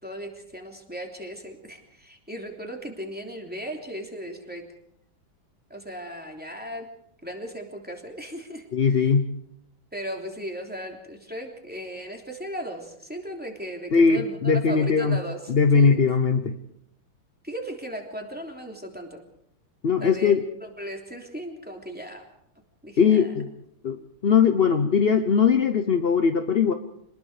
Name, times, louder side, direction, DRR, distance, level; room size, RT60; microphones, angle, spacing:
voice 1, 0.0-4.7 5.7-6.9 7.2-9.1 9.9-16.0 17.4-19.2 20.0-20.3 20.6-22.3 22.8-23.3, equal, 5° right, 1 dB, 3.1 m, -37 dB
voice 2, 8.7-9.3 13.9-15.2 15.5-16.5 19.8-20.4 23.0-23.5 23.8-24.0 24.2-26.7, left 6 dB, 60° left, 8 dB, 0.6 m, -20 dB
26.5 x 20.5 x 5.0 m, 0.74 s
omnidirectional pair, 2.3 m